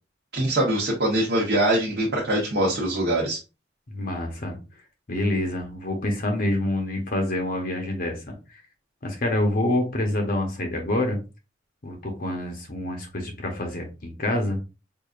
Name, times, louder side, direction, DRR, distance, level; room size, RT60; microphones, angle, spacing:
voice 1, 0.3-3.4, right 1 dB, 55° right, -4 dB, 0.9 m, -23 dB
voice 2, 3.9-4.6 5.1-8.6 9.0-11.2 11.8-14.6, left 1 dB, 50° left, 2 dB, 0.8 m, -27 dB
4.8 x 2.5 x 2.4 m, 0.29 s
head